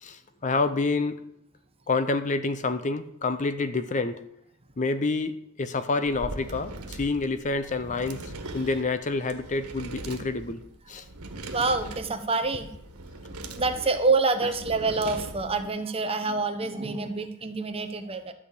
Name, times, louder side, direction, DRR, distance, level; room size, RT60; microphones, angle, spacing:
voice 1, 0.0-1.3 1.9-4.2 4.8-10.6 10.9-11.1, left 3 dB, 35° left, 11 dB, 0.6 m, -28 dB
sound 1, 6.0-15.7, right 2 dB, 85° right, 1.5 m, -40 dB
voice 2, 11.5-12.7 13.5-18.3, right 3 dB, 25° right, 8 dB, 0.9 m, -27 dB
13.0 x 4.9 x 8.4 m, 0.76 s
head